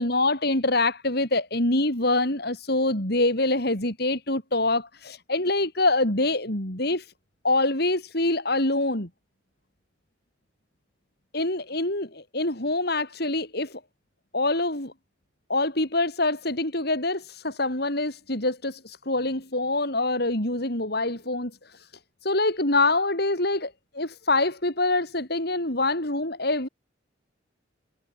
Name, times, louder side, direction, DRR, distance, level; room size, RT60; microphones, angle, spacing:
voice 1, 0.0-7.1 7.4-9.1 11.3-13.8 14.3-14.9 15.5-21.5 22.2-26.7, left 2 dB, 55° left, 6.1 m, -25 dB
head